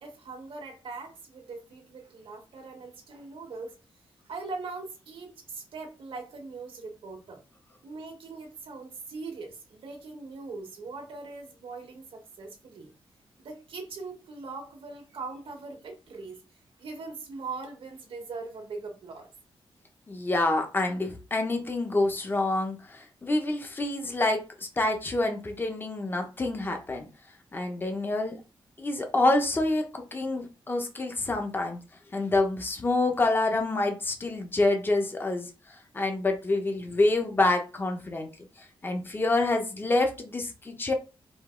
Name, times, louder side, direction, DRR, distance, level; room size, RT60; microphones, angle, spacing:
voice 1, 0.0-3.8 4.2-7.4 7.8-12.9 13.4-16.4 16.8-19.3, right 4 dB, 75° right, 1.4 m, -41 dB
voice 2, 20.1-24.4 24.8-27.1 27.5-28.4 28.8-31.8 32.1-35.5 35.9-38.3 38.8-40.9, left 2 dB, 20° left, 0.9 m, -27 dB
5.1 x 2.7 x 3.8 m
wide cardioid pair, 145°, 9 cm